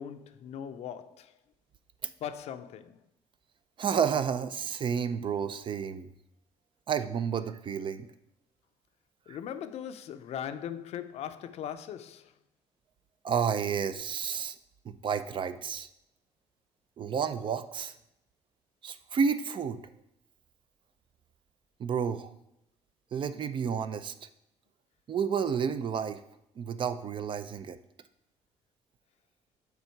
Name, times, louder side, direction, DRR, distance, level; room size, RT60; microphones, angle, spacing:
voice 1, 0.0-1.4 2.2-3.0 9.3-12.3, left 9 dB, 65° left, 0.5 m, -39 dB
voice 2, 3.8-6.1 6.9-8.1 9.3-9.4 13.2-14.6 14.8-15.9 17.0-17.9 18.8-19.8 21.8-22.3 23.1-24.1 25.1-26.2 26.6-27.8, right 7 dB, 45° right, 0.5 m, -31 dB
7.0 x 3.9 x 4.5 m
cardioid pair, 95°, 12 cm